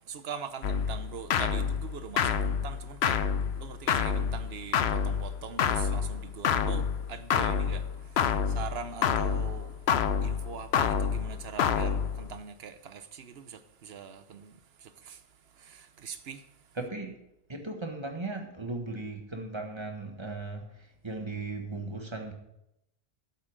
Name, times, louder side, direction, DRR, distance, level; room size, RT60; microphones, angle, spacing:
voice 1, 0.1-3.2 3.5-9.7 10.2-15.2 15.6-16.4, right 7 dB, 70° right, 1.1 m, -42 dB
sound 1, 0.6-12.4, left 7 dB, 75° left, 0.9 m, -28 dB
voice 2, 16.7-17.2 17.5-22.3, right 2 dB, 25° right, 1.4 m, -37 dB
8.4 x 7.8 x 6.5 m
omnidirectional pair, 1.1 m